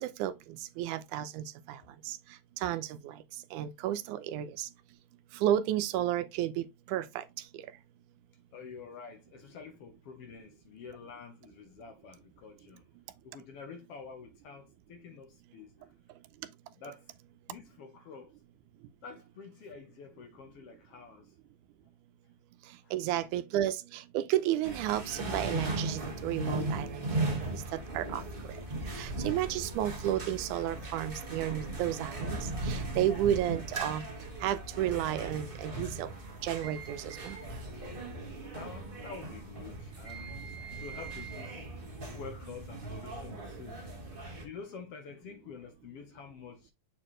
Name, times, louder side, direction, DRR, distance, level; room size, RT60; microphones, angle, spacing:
voice 1, 0.0-2.2 2.6-3.2 3.5-4.7 5.3-7.2 7.5-7.6 22.9-28.6 28.9-34.1 34.4-36.1 36.4-37.4, right 12 dB, 85° right, 2.1 m, -32 dB
voice 2, 8.5-12.9 13.2-15.9 16.8-17.1 17.5-18.4 19.0-21.4 22.8-23.3 27.7-27.9 31.6-31.7 34.7-34.8 36.7-36.9 38.5-41.7 42.1-46.7, left 5 dB, 65° left, 1.6 m, -48 dB
sound 1, 24.6-44.4, right 2 dB, 30° right, 1.1 m, -38 dB
7.3 x 4.3 x 3.1 m
omnidirectional pair, 3.4 m